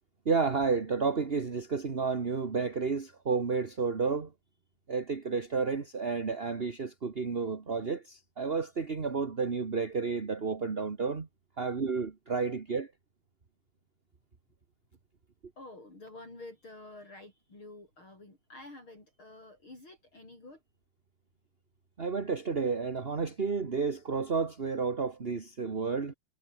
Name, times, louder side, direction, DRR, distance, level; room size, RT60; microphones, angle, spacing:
voice 1, 0.2-4.3 4.9-11.3 11.6-12.9 22.0-26.1, right 5 dB, 30° right, 1.2 m, -31 dB
voice 2, 15.6-20.6, left 2 dB, 45° left, 9.0 m, -49 dB
omnidirectional pair, 3.3 m